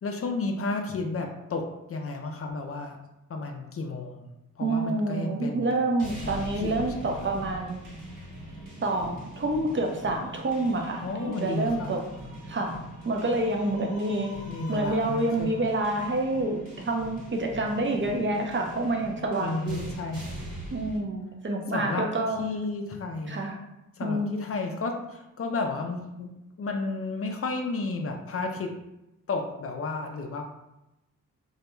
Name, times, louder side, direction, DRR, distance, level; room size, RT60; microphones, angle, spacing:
voice 1, 0.0-3.0 3.3-4.3 4.6-5.8 6.2-7.1 11.0-12.0 14.4-15.7 19.4-20.4 21.7-22.1 22.4-23.4 24.0-26.3 26.6-28.7 29.3-30.5, left 3 dB, 45° left, 3 dB, 0.4 m, -32 dB
voice 2, 4.6-7.8 8.8-12.0 12.5-12.8 13.0-19.9 20.7-22.4 23.3-23.6 24.0-24.4, right 2 dB, 35° right, 1 dB, 0.5 m, -28 dB
sound 1, 6.0-21.0, equal, 70° right, 1.1 m, -42 dB
2.3 x 2.1 x 3.0 m, 0.92 s
cardioid pair, 60°, 33 cm